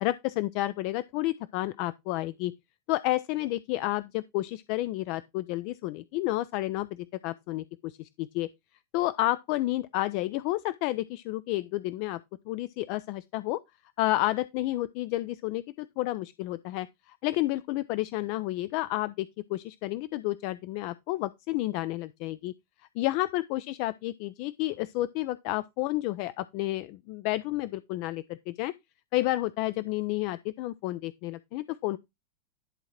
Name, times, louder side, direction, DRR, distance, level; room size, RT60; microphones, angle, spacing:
voice 1, 0.0-2.5 2.9-8.5 8.9-12.2 12.5-13.6 14.0-22.5 23.0-28.7 29.1-32.0, left 17 dB, 45° left, 0.4 m, -31 dB
11.0 x 3.7 x 4.4 m
figure-of-eight pair, 90°, 0 cm